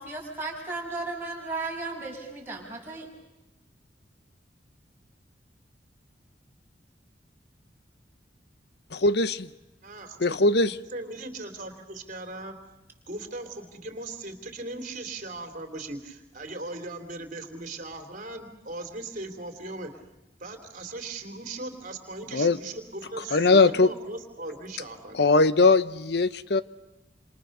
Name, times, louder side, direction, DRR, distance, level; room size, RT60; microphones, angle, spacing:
voice 1, 0.0-3.1, right 3 dB, 10° right, -3 dB, 6.5 m, -35 dB
voice 2, 8.9-9.5 10.2-10.7 22.3-22.6 23.3-23.9 25.1-26.6, left 3 dB, 65° left, 15 dB, 0.9 m, -20 dB
voice 3, 9.8-12.6 13.1-19.9 20.4-25.3, right 2 dB, 45° right, 7 dB, 3.3 m, -38 dB
28.0 x 27.5 x 6.8 m, 1.0 s
head